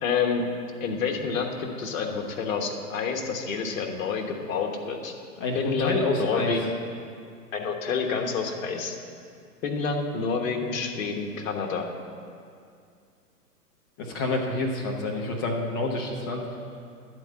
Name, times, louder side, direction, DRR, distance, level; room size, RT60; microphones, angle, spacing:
voice 1, 0.0-0.4 0.8-5.1 5.5-6.7 7.5-8.9 9.6-11.9, left 5 dB, 55° left, 3 dB, 1.4 m, -28 dB
voice 2, 5.4-6.5 14.0-16.4, left 2 dB, 15° left, 0 dB, 0.4 m, -28 dB
10.5 x 4.6 x 7.6 m, 2.3 s
hypercardioid pair, 130°, 48 cm